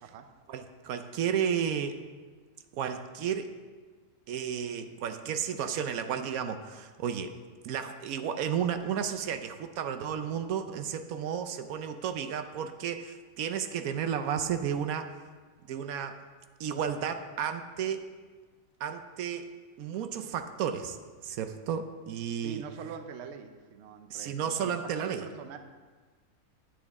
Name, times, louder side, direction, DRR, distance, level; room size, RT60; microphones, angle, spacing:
voice 1, 0.5-2.0 2.7-3.5 4.3-7.3 7.6-15.1 15.7-16.2 16.6-18.1 18.8-19.5 19.8-21.0 21.2-22.7 24.1-25.3, right 8 dB, 85° right, 8 dB, 1.1 m, -32 dB
voice 2, 22.4-25.6, right 6 dB, 60° right, 7 dB, 0.9 m, -44 dB
10.5 x 8.6 x 3.6 m, 1.4 s
omnidirectional pair, 1.5 m